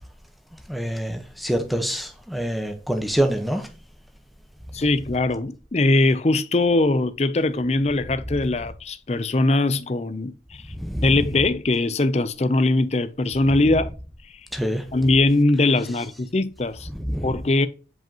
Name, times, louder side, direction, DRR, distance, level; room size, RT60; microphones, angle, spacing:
voice 1, 0.7-3.7 10.7-11.2 14.5-14.8 16.9-17.3, equal, ahead, 1.0 m, -26 dB
voice 2, 4.7-10.6 11.0-13.9 14.9-16.9 17.2-17.7, left 2 dB, 40° left, 0.5 m, -21 dB
7.7 x 5.2 x 2.9 m
head